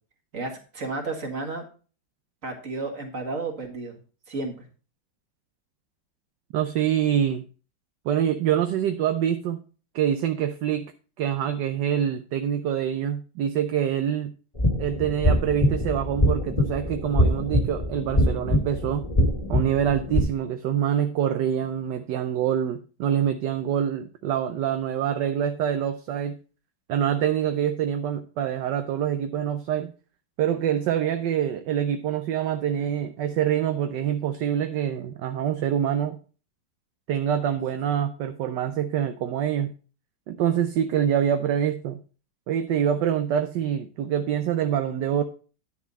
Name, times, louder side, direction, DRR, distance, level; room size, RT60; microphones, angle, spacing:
voice 1, 0.3-1.7 2.4-4.0 4.3-4.7, right 3 dB, 45° right, 3 dB, 2.2 m, -32 dB
voice 2, 6.5-7.4 8.0-9.6 9.9-10.9 11.2-14.3 14.8-19.0 19.5-26.4 26.9-29.9 30.4-36.2 37.1-39.7 40.3-42.0 42.5-45.2, right 9 dB, 70° right, 7 dB, 1.3 m, -25 dB
sound 1, 14.6-20.2, equal, 20° left, 1.8 m, -24 dB
10.5 x 7.1 x 4.1 m, 0.37 s
omnidirectional pair, 2.1 m